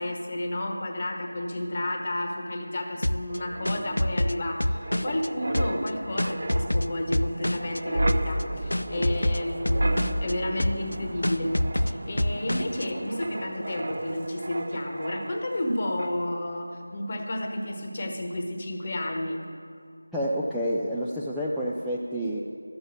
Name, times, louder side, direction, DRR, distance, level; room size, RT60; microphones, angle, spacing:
voice 1, 0.0-19.4, left 1 dB, 30° left, 3 dB, 1.1 m, -31 dB
sound 1, 3.0-5.3 5.5-7.8 8.1-8.4 8.7-10.3 10.6-11.0 11.2-12.8, left 1 dB, 80° left, 0.4 m, -27 dB
Wind, 3.3-15.7 16.0-16.2, right 1 dB, 45° right, 0.8 m, -33 dB
voice 2, 20.1-22.4, equal, ahead, -10 dB, 0.3 m, -28 dB
12.5 x 7.0 x 7.7 m, 2.3 s
figure-of-eight pair, 170°, 0 cm